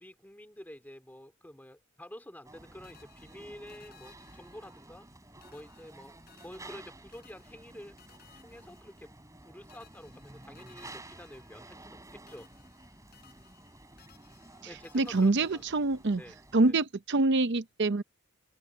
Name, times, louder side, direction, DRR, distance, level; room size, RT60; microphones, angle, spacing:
voice 1, 0.0-5.1 5.5-8.0 8.4-9.1 9.4-12.5 14.6-15.6 16.2-16.4 16.7-16.8, left 1 dB, 10° left, 2.6 m, -49 dB
sound 1, 2.4-16.7, right 2 dB, 15° right, 4.3 m, -52 dB
sound 2, 2.8-5.1 5.4-9.4 9.7-12.0 12.3-16.1, left 9 dB, 50° left, 7.0 m, -62 dB
voice 2, 14.9-16.2 16.5-18.0, right 2 dB, 55° right, 0.7 m, -25 dB
open air
head